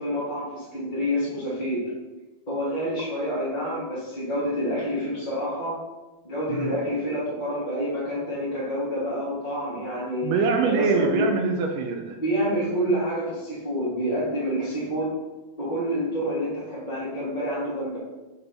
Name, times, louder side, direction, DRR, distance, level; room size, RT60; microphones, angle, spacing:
voice 1, 0.0-1.9 2.5-5.8 6.2-10.3 10.6-11.3 12.2-15.1 15.6-18.0, equal, 35° left, -9 dB, 0.7 m, -28 dB
voice 2, 10.2-12.2, right 4 dB, 80° right, 3 dB, 1.9 m, -24 dB
8.3 x 2.9 x 5.2 m, 1.1 s
omnidirectional pair, 4.4 m